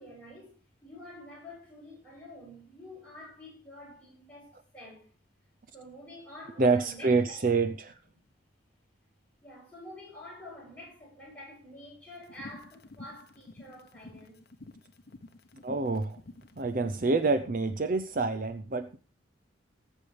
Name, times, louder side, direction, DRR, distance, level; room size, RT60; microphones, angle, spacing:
voice 1, 0.0-5.1 5.7-7.5 9.4-14.4 16.5-16.6, left 1 dB, 5° left, 7.8 m, -48 dB
voice 2, 6.6-7.9 15.6-16.2 16.6-19.0, right 3 dB, 45° right, 0.6 m, -27 dB
sound 1, 12.2-17.0, left 2 dB, 55° left, 0.9 m, -50 dB
19.5 x 8.3 x 3.4 m
head